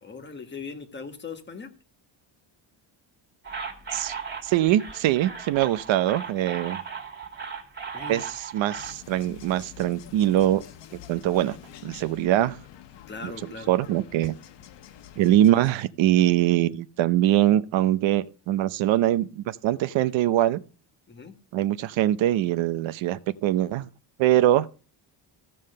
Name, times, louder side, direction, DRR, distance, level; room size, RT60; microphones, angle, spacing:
voice 1, 0.0-1.7 7.9-8.3 13.1-13.7 21.1-21.3, left 4 dB, 25° left, 1.4 m, -39 dB
sound 1, 3.4-8.9, right 6 dB, 25° right, 1.9 m, -37 dB
voice 2, 4.4-6.8 8.1-10.6 11.1-11.6 11.8-12.6 13.2-13.3 13.7-14.3 15.2-20.6 21.5-23.9 24.2-24.7, right 13 dB, 85° right, 0.7 m, -23 dB
sound 2, 8.8-15.7, left 11 dB, 70° left, 1.1 m, -47 dB
14.5 x 5.5 x 6.6 m
cardioid pair, 165°, 45 cm